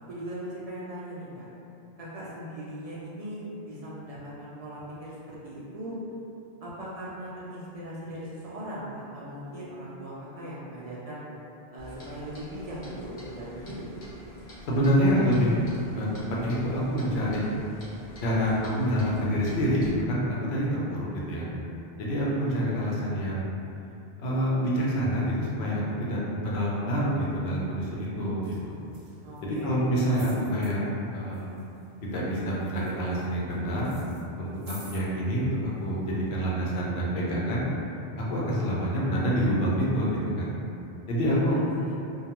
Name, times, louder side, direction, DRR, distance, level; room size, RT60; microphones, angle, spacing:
voice 1, 0.1-1.5 2.0-5.9 6.6-11.2 11.7-13.8 29.2-29.9 41.3-41.9, right 1 dB, 55° right, -8 dB, 0.4 m, -39 dB
Clock, 11.8-19.9, equal, 55° left, 0.8 m, -47 dB
voice 2, 14.7-15.5 16.0-16.1 16.4-17.5 18.2-21.5 22.0-23.5 24.2-28.8 29.4-30.8 31.1-31.5 32.0-34.0 34.4-37.7 38.2-40.5 41.1-41.6, equal, 85° left, -5 dB, 0.9 m, -27 dB
sound 1, 28.4-28.6 28.9-29.6 30.1-30.7 31.3-31.8 32.1-33.5 33.8-35.0 35.8-35.9, right 2 dB, 75° right, 0.9 m, -48 dB
2.2 x 2.2 x 2.8 m, 2.8 s
omnidirectional pair, 1.0 m